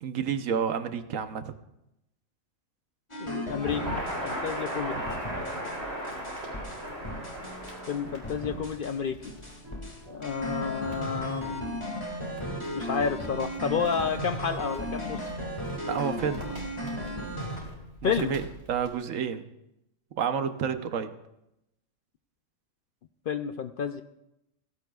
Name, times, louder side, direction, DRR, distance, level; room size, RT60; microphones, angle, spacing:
voice 1, 0.0-1.5 4.9-5.1 15.9-16.5 18.0-19.4 20.2-21.1, right 7 dB, 85° right, 9 dB, 1.2 m, -30 dB
sound 1, 3.1-4.8 5.1-5.8 6.0-8.0 8.2-8.9 9.2-17.6, equal, 20° left, 2.0 m, -36 dB
voice 2, 3.2-3.9 4.2-5.0 7.9-9.3 10.1-11.8 12.7-15.2 18.0-18.3 23.3-24.0, left 6 dB, 60° left, 9 dB, 0.6 m, -30 dB
Crackle, 3.5-18.9, equal, 55° right, 4.0 m, -39 dB
sound 2, 5.3-11.7, equal, 20° right, 4.3 m, -50 dB
17.5 x 16.5 x 2.4 m, 0.87 s
omnidirectional pair, 1.3 m